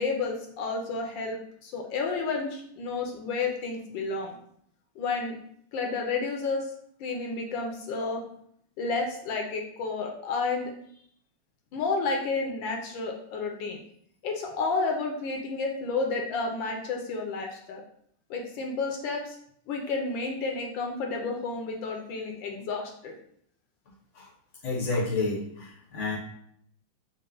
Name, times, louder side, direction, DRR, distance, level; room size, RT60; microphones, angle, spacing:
voice 1, 0.0-4.3 5.0-5.4 5.7-6.7 7.0-8.2 8.8-10.7 11.7-13.8 14.2-17.8 18.3-19.4 19.7-23.1, left 4 dB, 75° left, 1 dB, 1.3 m, -31 dB
voice 2, 24.6-26.2, left 3 dB, 55° left, -3 dB, 0.8 m, -30 dB
4.0 x 2.1 x 3.7 m, 0.68 s
omnidirectional pair, 2.2 m